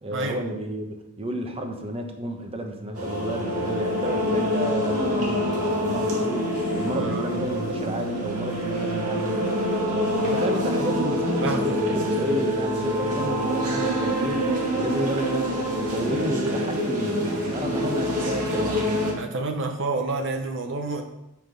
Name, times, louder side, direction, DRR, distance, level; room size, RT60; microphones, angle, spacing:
voice 1, 0.0-9.5 9.9-14.5 14.7-18.8, equal, 25° right, 4 dB, 1.0 m, -31 dB
sound 1, 2.9-19.1, equal, 85° right, 2.0 m, -26 dB
voice 2, 6.9-7.2 11.4-11.7 14.8-15.0 19.2-21.0, right 2 dB, 60° right, 3 dB, 0.8 m, -29 dB
8.0 x 5.8 x 5.1 m, 0.89 s
head